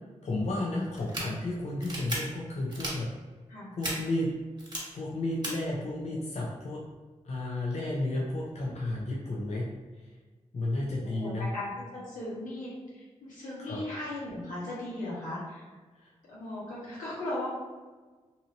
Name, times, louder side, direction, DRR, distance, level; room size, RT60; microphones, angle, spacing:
voice 1, 0.2-3.1 3.8-4.4 4.9-6.8 7.2-9.7 10.5-11.5 13.6-13.8 16.0-16.1, left 1 dB, 55° left, -4 dB, 0.6 m, -32 dB
sound 1, 0.9-1.2 1.8-2.2 2.7-2.9 3.8-3.9 4.6-4.8 5.4-5.5, right 1 dB, 35° right, 1.2 m, -34 dB
voice 2, 11.0-15.7 16.3-17.5, left 1 dB, 90° left, -8 dB, 1.1 m, -37 dB
2.7 x 2.5 x 2.8 m, 1.3 s
supercardioid pair, 40°, 13 cm